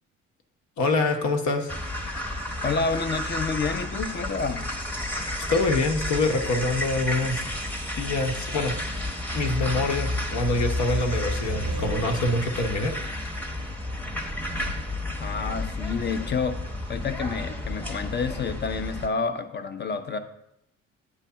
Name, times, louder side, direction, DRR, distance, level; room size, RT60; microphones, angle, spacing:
voice 1, 0.8-1.7 5.5-7.4 8.0-8.8 9.3-12.9, left 2 dB, 70° left, 4 dB, 1.1 m, -25 dB
sound 1, 1.7-19.1, left 1 dB, 5° left, 0.9 m, -31 dB
voice 2, 2.6-4.7 15.2-20.2, left 4 dB, 35° left, 9 dB, 0.7 m, -29 dB
sound 2, 11.1-12.9 14.0-15.5, right 5 dB, 90° right, 0.8 m, -39 dB
8.4 x 3.3 x 5.6 m, 0.80 s
cardioid pair, 90°, 30 cm